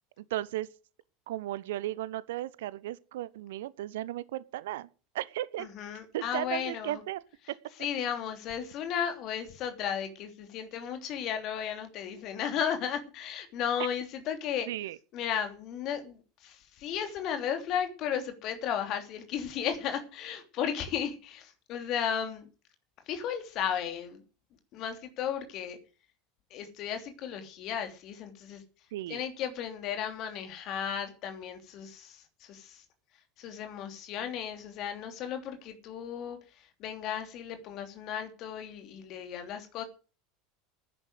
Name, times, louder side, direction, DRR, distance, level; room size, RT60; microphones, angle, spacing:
voice 1, 0.2-0.7 1.3-4.9 5.1-5.7 6.1-7.2 14.7-15.0 28.9-29.2, right 14 dB, 65° right, 0.8 m, -35 dB
voice 2, 5.6-7.0 7.8-14.7 15.1-22.5 23.1-24.2 24.7-25.8 26.5-28.6 29.1-32.8 33.4-36.4 36.8-39.8, left 8 dB, 45° left, 3.0 m, -34 dB
10.5 x 10.0 x 7.9 m
figure-of-eight pair, 75°, 0 cm